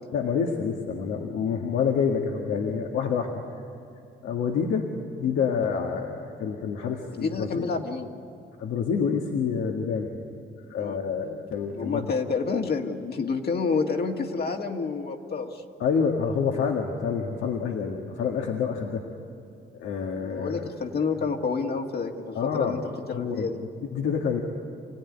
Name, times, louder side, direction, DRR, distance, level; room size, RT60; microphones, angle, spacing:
voice 1, 0.1-3.4 4.2-4.9 5.2-7.7 8.6-10.1 10.7-12.1 15.8-19.0 19.8-20.7 22.4-22.8 23.1-24.4, left 6 dB, 85° left, 1 dB, 1.8 m, -27 dB
voice 2, 7.1-8.1 10.8-11.0 11.7-15.6 20.1-22.8 23.1-23.6, left 4 dB, 55° left, 2 dB, 1.9 m, -29 dB
26.0 x 16.0 x 9.8 m, 2.4 s
cardioid pair, 90°, 20 cm